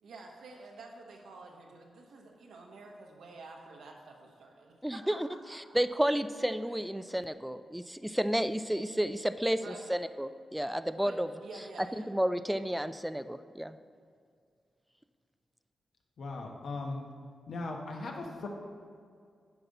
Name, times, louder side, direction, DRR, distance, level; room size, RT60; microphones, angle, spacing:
voice 1, 0.0-5.8 6.6-6.9 9.6-9.9 11.0-12.1, right 3 dB, 85° right, 0 dB, 1.2 m, -50 dB
voice 2, 4.8-5.3 5.7-11.3 12.1-13.8, equal, 5° right, 12 dB, 0.3 m, -31 dB
voice 3, 16.2-17.0 17.5-18.5, left 3 dB, 70° left, 1 dB, 1.0 m, -38 dB
9.9 x 5.3 x 4.1 m, 2.2 s
cardioid pair, 85°, 0 cm